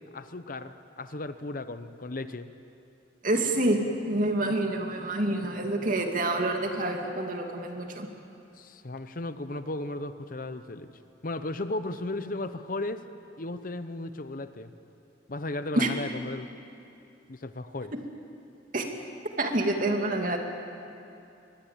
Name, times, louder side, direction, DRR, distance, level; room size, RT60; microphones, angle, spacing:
voice 1, 0.1-2.5 8.6-10.9 11.2-13.0 13.4-14.7 15.3-16.5 17.3-17.9, left 2 dB, 50° left, 11 dB, 0.9 m, -35 dB
voice 2, 3.2-8.1 15.7-15.9 18.7-18.8 19.4-20.4, right 1 dB, 45° right, 3 dB, 2.5 m, -27 dB
24.0 x 20.5 x 8.9 m, 2.8 s
head